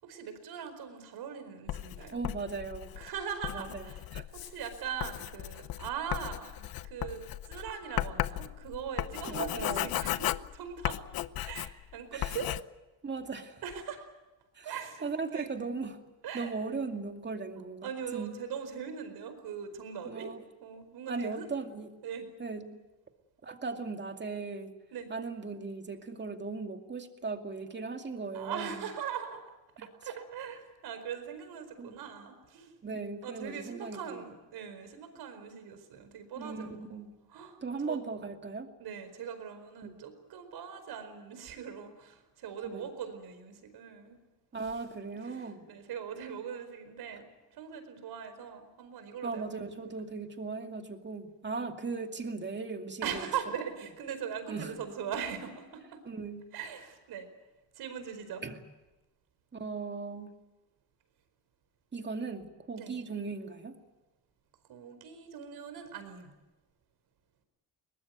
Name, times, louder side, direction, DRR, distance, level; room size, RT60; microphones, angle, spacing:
voice 1, 0.0-2.2 3.0-4.0 4.3-11.1 11.4-12.5 13.6-14.0 14.6-15.5 16.2-16.5 17.8-20.3 20.6-21.5 22.0-22.3 24.9-25.1 28.3-29.4 29.8-32.7 33.2-37.0 37.3-37.6 37.9-38.0 38.8-44.2 45.2-49.9 53.0-56.0 56.5-57.3 57.7-58.4 62.8-62.9 64.7-66.3, right 7 dB, 75° right, 9 dB, 4.7 m, -41 dB
Writing, 1.7-11.9 12.2-12.6, left 14 dB, 65° left, 0.8 m, -36 dB
voice 2, 2.1-3.0 3.5-4.2 9.3-9.9 12.1-12.4 13.0-13.6 14.5-14.7 15.0-16.0 16.3-18.3 20.0-20.4 21.1-21.9 22.4-22.8 23.4-24.8 25.1-28.8 29.8-29.9 31.8-32.0 32.8-34.3 36.4-37.1 37.6-38.7 39.8-40.0 42.6-42.9 44.5-45.7 47.1-47.2 49.2-53.3 54.5-54.7 56.1-56.4 58.4-58.6 59.5-60.3 61.9-63.8, right 4 dB, 30° right, 5 dB, 2.4 m, -38 dB
22.5 x 19.5 x 9.3 m, 1.1 s
cardioid pair, 105°, 38 cm